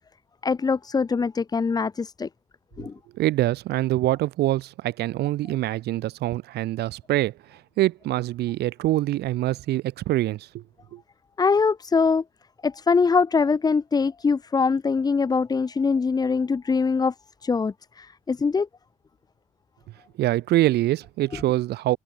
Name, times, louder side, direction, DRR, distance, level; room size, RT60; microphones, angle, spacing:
voice 1, 0.4-2.3 2.8-2.9 11.4-12.2 12.6-17.1 17.4-18.7, left 5 dB, 25° left, 0.9 m, -23 dB
voice 2, 3.2-10.6 10.9-11.0 20.2-22.0, right 15 dB, 75° right, 2.9 m, -25 dB
cardioid pair, 110°, 17 cm